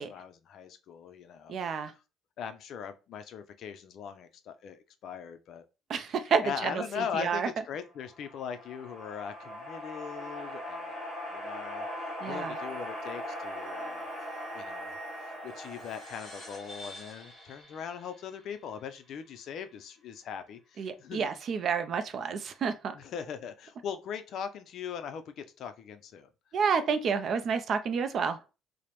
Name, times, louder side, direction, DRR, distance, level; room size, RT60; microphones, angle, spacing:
voice 1, 0.0-1.6 2.4-5.6 6.4-11.0 11.3-11.9 12.2-14.0 14.5-15.0 15.4-21.3 22.9-26.3, left 7 dB, 55° left, 0.4 m, -40 dB
voice 2, 1.5-1.9 5.9-7.5 12.2-12.6 20.8-22.9 26.5-28.4, right 6 dB, 40° right, 0.4 m, -30 dB
sound 1, 7.9-17.5, left 1 dB, 10° right, 1.6 m, -40 dB
Wind instrument woodwind instrument, 12.6-16.5, right 4 dB, 60° right, 0.8 m, -50 dB
sound 2, 15.5-20.4, left 1 dB, 10° left, 1.4 m, -51 dB
4.8 x 2.0 x 2.9 m
cardioid pair, 150°, 0 cm